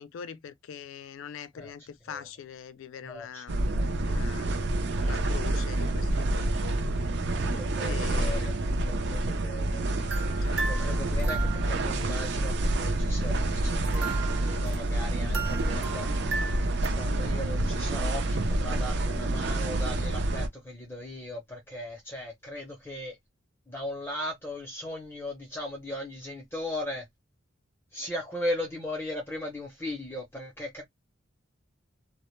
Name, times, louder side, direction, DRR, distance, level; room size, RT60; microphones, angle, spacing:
voice 1, 0.0-3.7 4.0-4.5 5.0-6.8 7.8-8.6 10.4-10.8, left 8 dB, 75° left, 0.3 m, -43 dB
voice 2, 3.0-3.9 7.5-8.5 8.8-9.9 10.4-12.5 12.8-16.1 17.0-23.2 23.7-27.0 27.9-30.8, left 1 dB, 10° left, 0.5 m, -37 dB
sound 1, 3.5-20.5, right 1 dB, 55° right, 0.4 m, -28 dB
sound 2, 10.1-12.0 13.8-16.9, right 5 dB, 75° right, 0.8 m, -36 dB
2.0 x 2.0 x 2.9 m
head